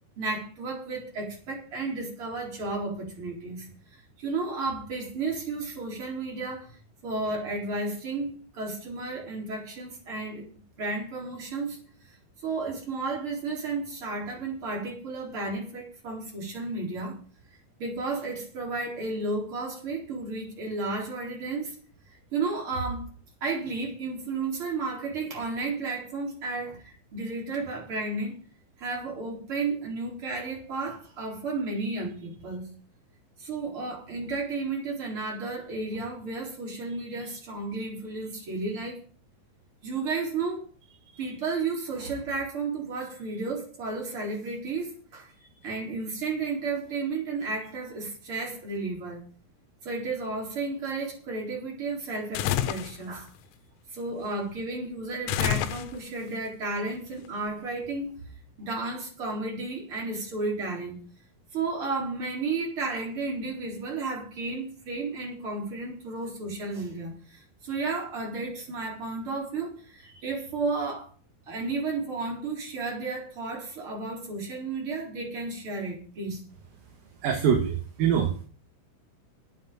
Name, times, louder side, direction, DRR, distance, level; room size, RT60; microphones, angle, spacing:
voice 1, 0.2-10.4 10.8-17.2 17.8-21.8 22.3-23.1 23.4-28.4 28.8-32.7 33.4-39.0 39.8-45.3 45.6-49.2 49.8-53.3 53.9-58.2 58.6-61.0 61.5-71.1 71.5-76.4, right 3 dB, 30° right, 4.5 m, -33 dB
sound 1, 52.3-53.0 55.3-56.2, left 11 dB, 85° left, 3.3 m, -28 dB
voice 2, 77.2-78.3, right 8 dB, 60° right, 2.7 m, -24 dB
9.2 x 8.3 x 9.0 m
omnidirectional pair, 5.3 m